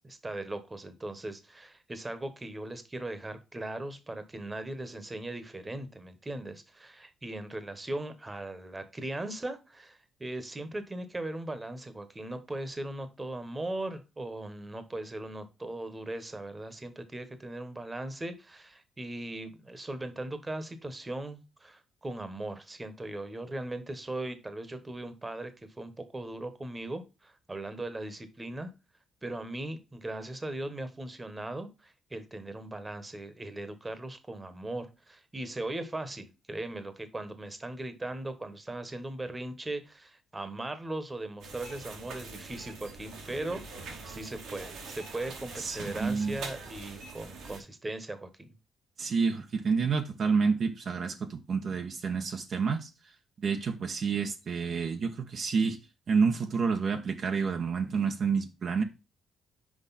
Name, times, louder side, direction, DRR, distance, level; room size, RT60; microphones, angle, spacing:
voice 1, 0.0-25.5 25.8-28.7 29.2-48.5, right 1 dB, 20° right, 1.3 m, -39 dB
sound 1, 41.4-47.6, right 3 dB, 85° right, 2.6 m, -44 dB
voice 2, 45.6-46.4 49.0-52.9 53.4-55.8 56.1-58.8, right 5 dB, 55° right, 1.0 m, -29 dB
6.1 x 4.9 x 4.1 m
cardioid pair, 90°, 0 cm